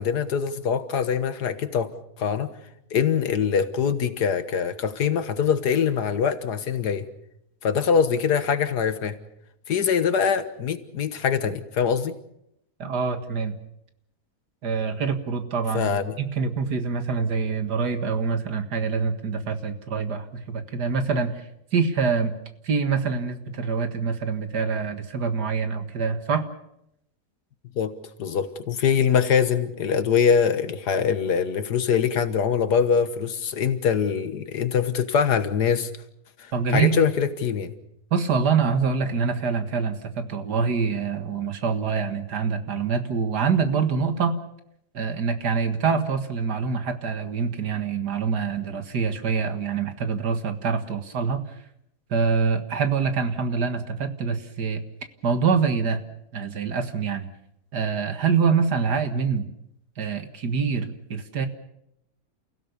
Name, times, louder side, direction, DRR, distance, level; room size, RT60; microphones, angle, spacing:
voice 1, 0.0-1.9 2.2-2.5 2.9-7.1 7.6-9.2 9.7-12.1 15.7-16.1 27.8-27.9 28.2-35.9 36.4-37.8, left 7 dB, 80° left, 11 dB, 1.9 m, -23 dB
voice 2, 12.8-13.6 14.6-21.4 21.7-22.3 22.6-26.4 36.5-37.0 38.1-44.4 44.9-51.4 52.1-54.8 55.2-56.0 56.3-57.2 57.7-59.5 60.0-61.5, right 5 dB, 85° right, 8 dB, 2.3 m, -25 dB
29.5 x 16.5 x 6.9 m, 0.79 s
omnidirectional pair, 1.7 m